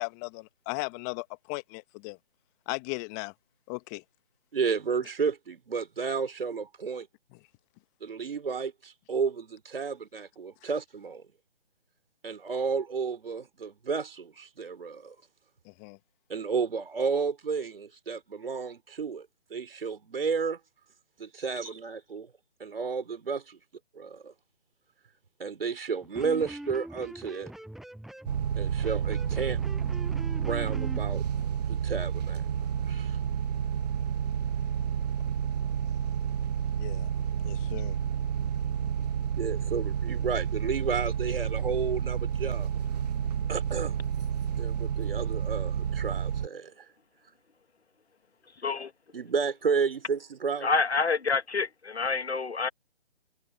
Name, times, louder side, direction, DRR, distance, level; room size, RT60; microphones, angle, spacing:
voice 1, 0.0-2.2 2.7-3.3 3.7-4.0 15.6-16.0 36.7-37.1 37.4-38.0, left 30 dB, 15° left, 1.6 m, -37 dB
voice 2, 4.5-7.1 8.0-11.2 12.2-15.2 16.3-20.6 21.2-22.3 22.6-23.6 23.9-24.3 25.4-27.5 28.6-29.6 30.4-31.2 31.7-32.4 32.8-33.2 39.3-42.7 43.5-44.0 44.6-46.8 49.1-50.7, right 5 dB, 60° right, 4.4 m, -32 dB
Electric guitar, 26.0-31.0, right 1 dB, ahead, 7.9 m, -43 dB
sound 1, 28.3-46.5, right 8 dB, 40° right, 1.6 m, -30 dB
voice 3, 50.6-52.7, left 4 dB, 75° left, 1.6 m, -27 dB
figure-of-eight pair, 150°, 33 cm